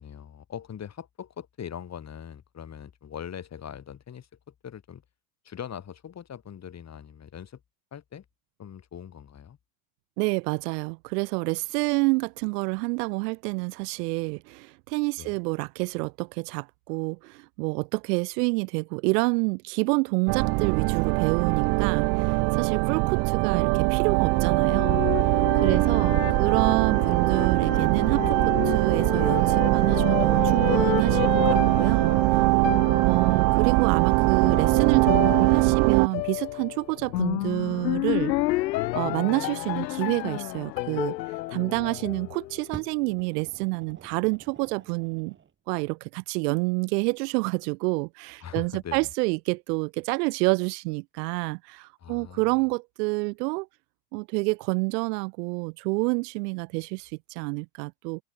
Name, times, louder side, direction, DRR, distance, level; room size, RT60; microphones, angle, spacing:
voice 1, 0.0-5.0 5.4-7.6 7.9-8.2 8.6-9.6 15.2-15.4 25.6-26.0 32.8-33.0 41.7-42.1 48.4-49.1 52.0-52.6, left 8 dB, 30° left, 5.6 m, -41 dB
voice 2, 10.2-25.0 25.5-32.4 33.1-38.3 38.9-41.2 41.5-45.4 45.7-53.7 54.1-58.2, right 28 dB, 75° right, 0.6 m, -28 dB
sound 1, 20.3-36.1, right 28 dB, 55° right, 0.9 m, -22 dB
sound 2, 24.2-42.8, left 18 dB, 90° left, 1.1 m, -31 dB
Fire, 42.7-45.5 46.4-46.5, right 7 dB, 25° right, 1.6 m, -46 dB
supercardioid pair, 105°, 49 cm